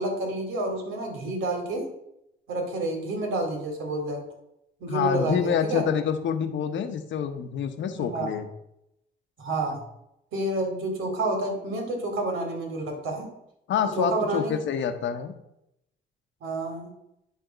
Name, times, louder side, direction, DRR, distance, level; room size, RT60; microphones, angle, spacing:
voice 1, 0.0-1.9 2.5-4.2 4.8-5.8 7.9-8.4 9.4-9.8 10.3-13.3 14.0-14.6 16.4-16.9, right 2 dB, 85° right, 1 dB, 2.4 m, -29 dB
voice 2, 4.9-8.5 9.7-9.8 13.7-15.3, left 8 dB, 70° left, 7 dB, 1.0 m, -27 dB
10.5 x 3.6 x 5.1 m, 0.81 s
cardioid pair, 90°, 20 cm